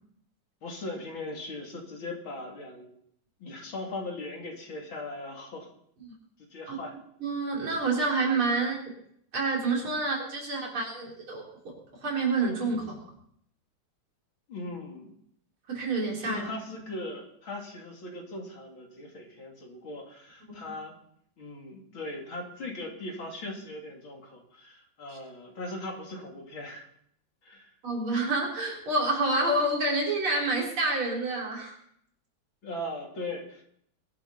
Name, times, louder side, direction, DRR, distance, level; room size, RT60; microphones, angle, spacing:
voice 1, 0.6-2.9 3.4-5.7 6.4-6.9 14.5-15.1 16.2-20.9 21.4-26.9 27.4-27.7 32.6-33.6, left 2 dB, 70° left, 0 dB, 3.6 m, -39 dB
voice 2, 7.2-8.8 9.3-13.0 15.7-16.4 20.5-20.7 27.8-31.7, right 2 dB, 85° right, -1 dB, 4.6 m, -28 dB
21.5 x 11.5 x 4.2 m, 0.68 s
omnidirectional pair, 2.3 m